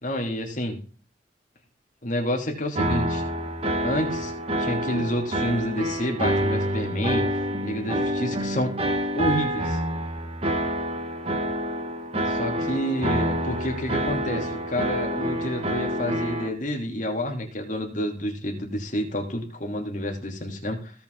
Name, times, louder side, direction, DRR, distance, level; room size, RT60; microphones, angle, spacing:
voice 1, 0.0-0.8 2.0-3.2 3.8-4.3 4.6-8.8 9.1-9.8 12.3-20.9, equal, 45° left, 2 dB, 2.9 m, -29 dB
sound 1, 2.8-16.5, equal, 35° right, 1.7 m, -27 dB
17.0 x 5.8 x 3.8 m, 0.38 s
head